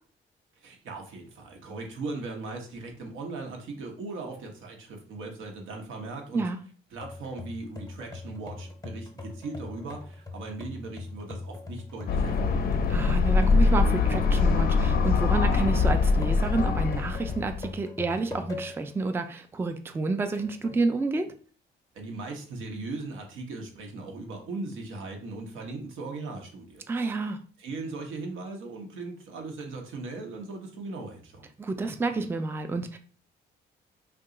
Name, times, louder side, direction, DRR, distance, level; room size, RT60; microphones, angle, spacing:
voice 1, 0.6-6.5 6.9-12.8 21.9-26.8 27.6-31.5, right 3 dB, 85° right, 2 dB, 0.9 m, -38 dB
sound 1, 7.0-18.9 19.4-19.5 20.3-20.8, left 3 dB, 15° left, 0.7 m, -41 dB
sound 2, 12.1-17.7, left 4 dB, 50° left, 0.5 m, -23 dB
voice 2, 12.9-21.3 26.9-27.4 31.6-33.0, right 3 dB, 10° right, 7 dB, 0.3 m, -29 dB
2.8 x 2.3 x 3.7 m, 0.42 s
cardioid pair, 90°, 20 cm